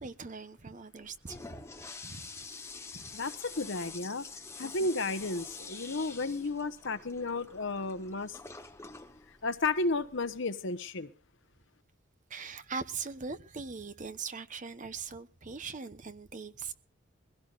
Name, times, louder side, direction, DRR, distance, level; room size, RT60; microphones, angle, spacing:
voice 1, 0.0-1.7 2.0-2.3 2.9-3.1 4.6-4.9 12.3-16.7, right 5 dB, 40° right, 0.9 m, -41 dB
Toilet flush, 1.0-10.4, left 4 dB, 15° left, 1.1 m, -47 dB
voice 2, 3.1-4.3 4.6-8.4 9.4-11.1, left 3 dB, 60° left, 1.1 m, -33 dB
22.5 x 16.5 x 2.5 m
head